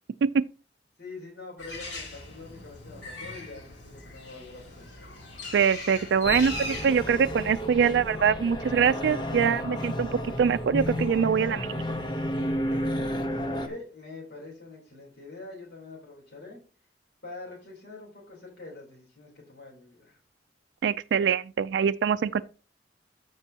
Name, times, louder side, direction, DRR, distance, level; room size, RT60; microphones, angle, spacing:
voice 1, 1.0-4.9 13.5-16.6 17.2-20.2, left 3 dB, 65° left, 3.4 m, -44 dB
Bird, 1.6-8.1, left 3 dB, 85° left, 3.1 m, -39 dB
voice 2, 5.5-11.8 20.8-22.4, right 7 dB, 80° right, 0.3 m, -24 dB
get me out, 6.2-13.7, equal, 25° left, 1.0 m, -32 dB
14.0 x 5.3 x 2.8 m
head